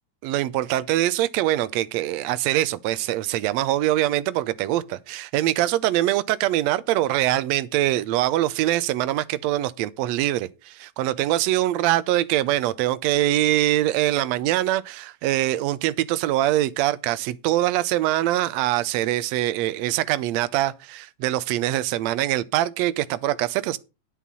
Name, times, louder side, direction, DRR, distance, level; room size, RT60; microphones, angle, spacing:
voice 1, 0.2-23.8, right 14 dB, 75° right, 1.7 m, -23 dB
10.0 x 5.5 x 6.1 m
omnidirectional pair, 3.4 m